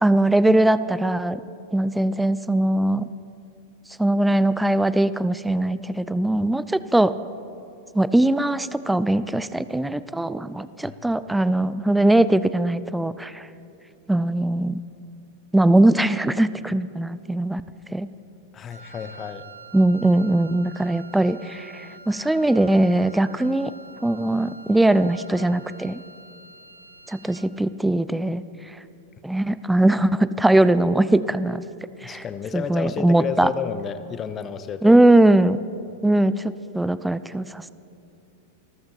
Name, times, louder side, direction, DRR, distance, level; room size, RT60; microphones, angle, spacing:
voice 1, 0.0-1.4 1.7-3.0 4.0-7.1 7.9-13.5 14.1-14.8 15.5-17.6 17.9-18.1 19.7-23.7 24.0-26.0 27.1-28.4 29.2-31.6 32.0-32.2 32.5-33.5 34.8-35.6 36.0-36.4 36.7-37.7, right 1 dB, 5° right, 15 dB, 0.4 m, -20 dB
voice 2, 18.5-19.5 32.0-35.0, left 7 dB, 25° left, 12 dB, 0.8 m, -31 dB
Wind instrument woodwind instrument, 18.7-27.6, right 3 dB, 90° right, 1.0 m, -46 dB
28.5 x 14.0 x 3.0 m, 2.8 s
figure-of-eight pair, 95°, 0 cm